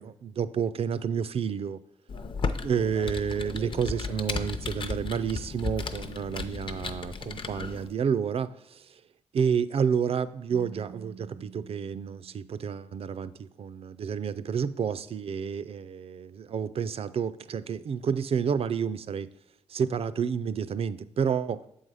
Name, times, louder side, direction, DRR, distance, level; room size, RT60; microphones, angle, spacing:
voice 1, 0.0-1.8 2.6-8.8 9.3-19.3 19.7-21.6, right 7 dB, 55° right, 14 dB, 0.4 m, -30 dB
Computer keyboard, 2.1-7.9, left 4 dB, 45° left, 0.5 m, -35 dB
Keyboard (musical), 10.5-13.2, right 7 dB, 80° right, 0.9 m, -49 dB
7.4 x 4.0 x 4.8 m, 0.83 s
cardioid pair, 105°, 12 cm